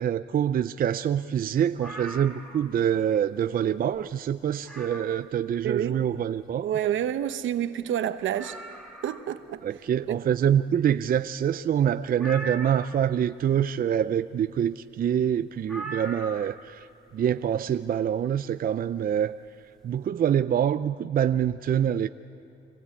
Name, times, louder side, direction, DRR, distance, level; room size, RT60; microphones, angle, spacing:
voice 1, 0.0-6.7 9.6-16.9 17.1-19.4 19.8-22.1, right 9 dB, 45° right, 0.5 m, -25 dB
sound 1, 1.8-2.8 3.3-3.4 3.9-4.0 4.6-5.2 7.0-7.1 7.3-7.4 7.8-7.9 8.3-9.4 12.2-13.1 15.7-16.7 18.0-18.1, right 2 dB, ahead, 2.8 m, -40 dB
voice 2, 5.6-6.0 6.6-8.6 9.0-9.6 10.1-10.2, right 10 dB, 75° right, 1.0 m, -28 dB
25.0 x 16.5 x 8.5 m
cardioid pair, 90°, 20 cm